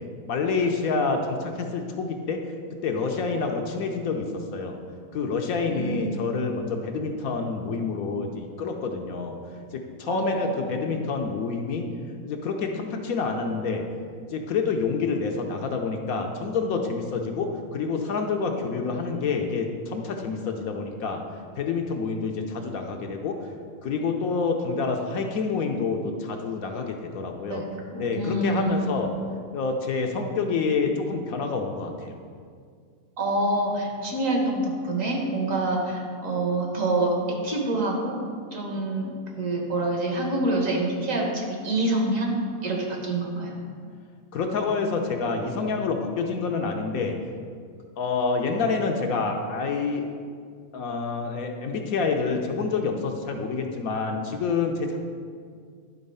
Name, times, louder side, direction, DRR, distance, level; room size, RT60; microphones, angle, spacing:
voice 1, 0.3-2.4 2.8-4.8 5.1-9.4 9.7-11.9 12.2-13.8 14.3-21.2 21.6-23.5 23.8-27.6 28.0-29.1 29.5-32.1 44.3-47.2 48.0-50.0 50.7-55.0, left 4 dB, 70° left, 3 dB, 1.1 m, -27 dB
voice 2, 5.7-6.2 10.1-10.7 27.5-28.9 33.2-38.2 38.5-43.5, right 2 dB, 60° right, 0 dB, 1.7 m, -26 dB
11.0 x 4.0 x 5.4 m, 2.1 s
omnidirectional pair, 1.6 m